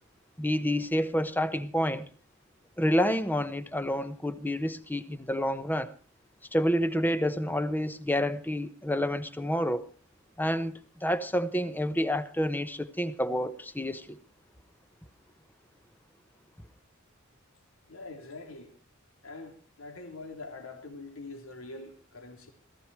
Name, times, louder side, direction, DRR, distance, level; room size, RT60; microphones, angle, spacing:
voice 1, 0.4-2.0 2.8-5.9 6.5-9.9 10.4-14.2, equal, 10° left, 1.0 m, -29 dB
voice 2, 17.9-18.7 19.2-22.5, left 3 dB, 85° left, 3.0 m, -44 dB
18.0 x 15.0 x 4.7 m
head